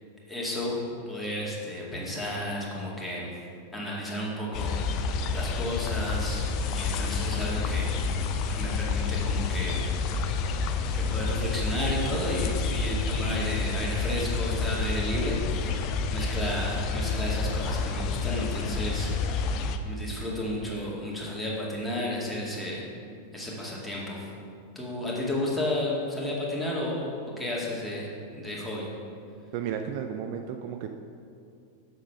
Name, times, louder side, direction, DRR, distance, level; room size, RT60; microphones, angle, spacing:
voice 1, 0.3-0.8 1.1-3.3 3.7-9.9 10.9-19.5 19.8-22.8 23.3-24.3 24.8-28.9, left 1 dB, 5° left, -6 dB, 2.2 m, -33 dB
sound 1, 4.5-19.8, left 4 dB, 40° left, 0.6 m, -29 dB
voice 2, 29.5-30.9, right 8 dB, 45° right, 6 dB, 0.4 m, -33 dB
7.2 x 6.7 x 5.7 m, 2.4 s
figure-of-eight pair, 90°, 0 cm